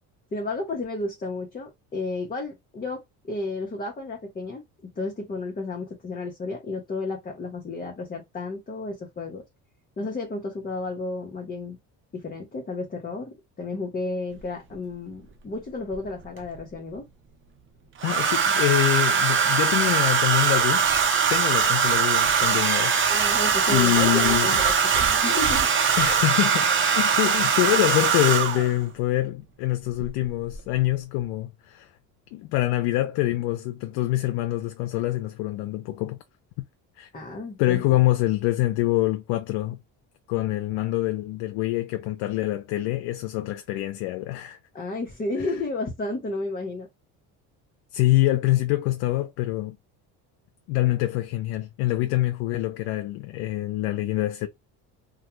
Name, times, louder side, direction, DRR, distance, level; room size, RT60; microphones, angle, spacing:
voice 1, 0.3-4.6 5.0-9.4 10.0-11.8 12.1-17.1 23.1-25.7 37.1-38.0 44.7-46.9, left 2 dB, 20° left, 0.8 m, -32 dB
Domestic sounds home sounds, 14.4-14.5 15.9-16.6 18.0-28.8 30.0-30.3 30.5-30.9, right 6 dB, 30° right, 0.6 m, -21 dB
voice 2, 18.0-20.9 21.3-23.1 23.7-24.6 26.0-31.9 32.3-36.2 37.0-37.1 37.6-39.8 40.3-44.6 47.9-49.8 50.7-54.5, left 16 dB, 80° left, 0.5 m, -25 dB
2.3 x 2.2 x 2.9 m
cardioid pair, 100°, 40 cm